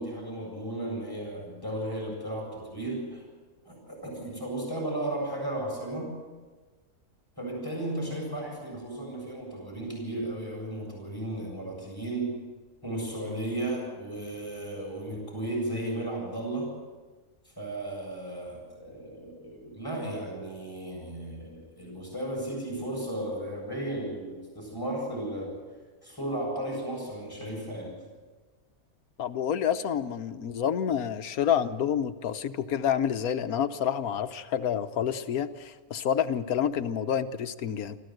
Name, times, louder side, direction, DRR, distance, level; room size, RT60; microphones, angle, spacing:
voice 1, 0.0-3.3 3.6-6.2 7.4-12.3 12.8-16.7 17.4-25.6 26.0-28.0, right 1 dB, 15° left, -2 dB, 7.7 m, -34 dB
voice 2, 29.2-38.0, left 8 dB, 80° left, 10 dB, 1.4 m, -28 dB
25.0 x 15.0 x 7.9 m, 1.3 s
omnidirectional pair, 1.5 m